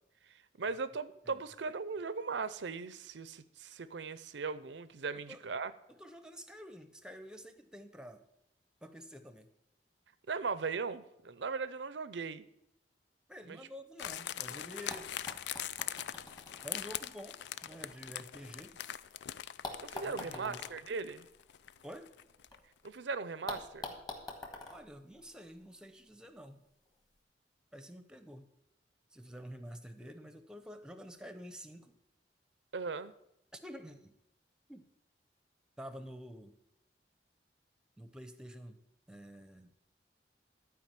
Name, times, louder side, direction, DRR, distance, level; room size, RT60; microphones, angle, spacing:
voice 1, 0.3-5.7 10.3-12.5 13.5-13.6 19.8-21.3 22.8-23.9 32.7-33.1, right 4 dB, 80° right, 15 dB, 0.6 m, -38 dB
voice 2, 5.9-8.2 8.8-9.5 13.3-15.4 16.6-18.8 20.0-20.6 21.8-22.1 24.7-26.6 27.7-28.5 29.1-32.0 33.5-34.2 34.7-34.8 35.8-36.6 38.0-38.8 39.1-39.7, equal, 5° right, 9 dB, 0.7 m, -49 dB
sound 1, 14.0-22.6 22.9-23.0, left 11 dB, 70° left, 0.3 m, -42 dB
sound 2, 14.9-19.0 19.6-22.6 22.9-23.0 23.5-25.9 26.8-26.9, left 2 dB, 25° left, 1.5 m, -47 dB
12.0 x 4.9 x 7.5 m, 0.82 s
head